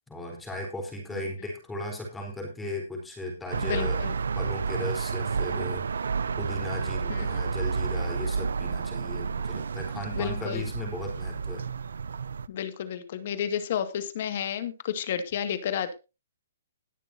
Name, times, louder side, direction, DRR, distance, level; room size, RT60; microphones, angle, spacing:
voice 1, 0.1-4.0 4.3-11.6, left 1 dB, 5° left, 1 dB, 4.1 m, -36 dB
sound 1, 3.5-12.5, right 5 dB, 80° right, 0.7 m, -31 dB
voice 2, 3.7-4.1 7.1-7.3 10.1-10.7 12.5-16.0, left 9 dB, 45° left, 10 dB, 2.0 m, -31 dB
20.5 x 7.0 x 2.8 m, 0.28 s
hypercardioid pair, 160°, 0 cm